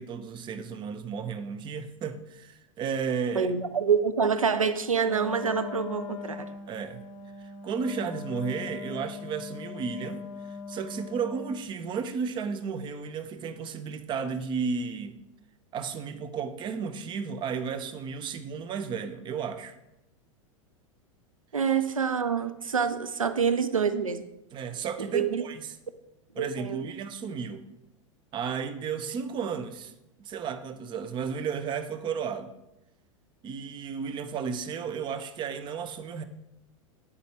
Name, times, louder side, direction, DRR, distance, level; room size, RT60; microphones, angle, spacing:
voice 1, 0.0-3.5 6.7-7.0 7.4-15.2 15.7-19.7 24.5-25.8 26.4-27.6 28.3-29.9 30.2-32.5 33.4-36.2, right 6 dB, 25° right, 10 dB, 0.7 m, -33 dB
voice 2, 3.4-6.5 21.5-24.3 25.1-25.4 26.4-26.9, right 6 dB, 80° right, 11 dB, 0.5 m, -26 dB
Wind instrument woodwind instrument, 5.0-11.7, left 5 dB, 40° left, 0.9 m, -40 dB
9.5 x 7.9 x 3.3 m, 0.89 s
figure-of-eight pair, 90°, 17 cm